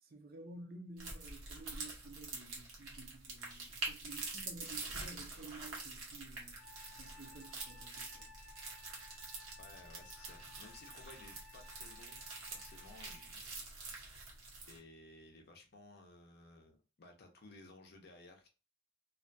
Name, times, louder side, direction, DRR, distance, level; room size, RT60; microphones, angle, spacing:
voice 1, 0.0-6.6 6.9-8.3, right 2 dB, 45° right, 0.5 m, -53 dB
sound 1, 1.0-14.8, right 3 dB, 85° right, 0.9 m, -46 dB
Wind instrument woodwind instrument, 6.6-13.3, left 3 dB, 90° left, 0.7 m, -59 dB
voice 2, 9.6-13.6 14.7-18.5, left 2 dB, 50° left, 0.5 m, -57 dB
2.3 x 2.2 x 2.5 m
head